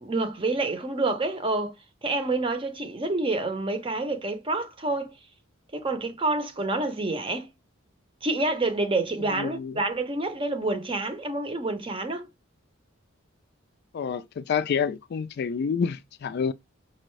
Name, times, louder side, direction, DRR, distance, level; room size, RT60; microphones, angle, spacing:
voice 1, 0.0-1.8 2.0-5.1 5.7-7.5 8.2-12.3, right 2 dB, 25° right, 0.7 m, -28 dB
voice 2, 9.3-9.7 13.9-16.5, left 6 dB, 50° left, 0.3 m, -28 dB
5.4 x 2.5 x 3.1 m
head